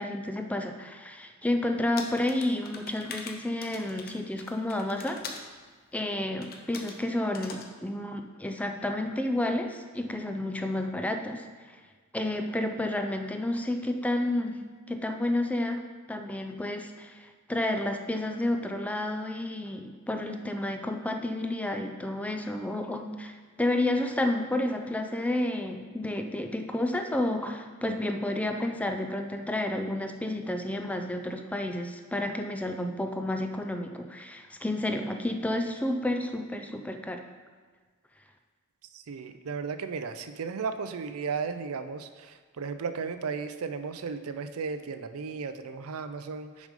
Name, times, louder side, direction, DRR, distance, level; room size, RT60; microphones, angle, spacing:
voice 1, 0.0-5.2 5.9-11.5 11.7-11.8 12.1-14.6 14.9-15.8 16.1-37.2, left 1 dB, 5° left, 5 dB, 0.4 m, -30 dB
sound 1, 2.0-5.5 6.4-7.0 7.3-7.7, left 4 dB, 45° left, 0.7 m, -42 dB
voice 2, 38.9-46.7, right 5 dB, 75° right, 10 dB, 0.5 m, -35 dB
6.2 x 5.1 x 5.3 m, 1.5 s
head